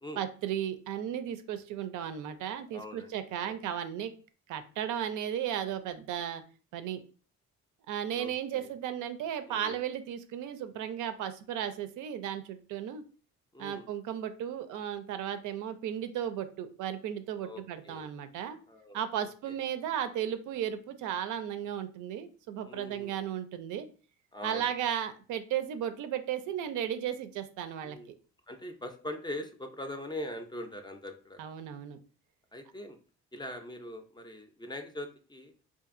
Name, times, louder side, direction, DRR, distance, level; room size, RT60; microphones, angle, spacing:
voice 1, 0.2-4.1 4.5-6.4 6.7-7.0 7.9-13.0 13.6-18.6 18.9-23.9 24.4-28.0 31.4-32.0, right 9 dB, 80° right, 10 dB, 0.5 m, -35 dB
voice 2, 2.7-3.6 8.1-8.7 9.5-9.8 13.5-13.9 17.4-18.1 18.7-19.0 22.7-23.2 24.3-24.7 27.8-28.1 28.5-31.4 32.5-33.0 33.3-35.5, left 1 dB, 15° left, 6 dB, 0.4 m, -42 dB
2.7 x 2.5 x 2.4 m, 0.38 s
cardioid pair, 90°, 30 cm